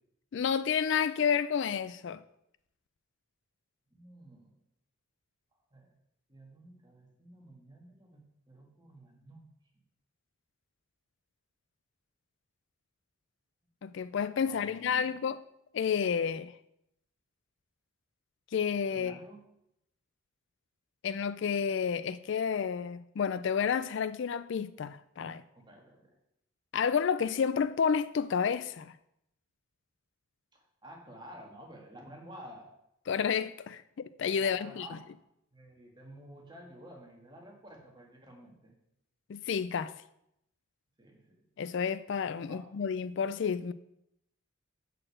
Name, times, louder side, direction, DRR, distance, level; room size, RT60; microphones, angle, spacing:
voice 1, 0.3-2.2 13.8-15.4 15.7-16.5 18.5-19.1 21.0-25.4 26.7-28.9 33.1-35.0 39.3-39.9 41.6-43.7, left 7 dB, 55° left, 0.3 m, -30 dB
voice 2, 3.9-4.5 5.7-5.9 6.3-9.5 14.4-15.1 18.9-19.5 25.5-26.1 30.5-32.7 34.4-35.0 35.5-38.7 41.0-41.4 42.4-42.6, right 1 dB, 20° right, 1.9 m, -51 dB
6.6 x 6.5 x 7.6 m
head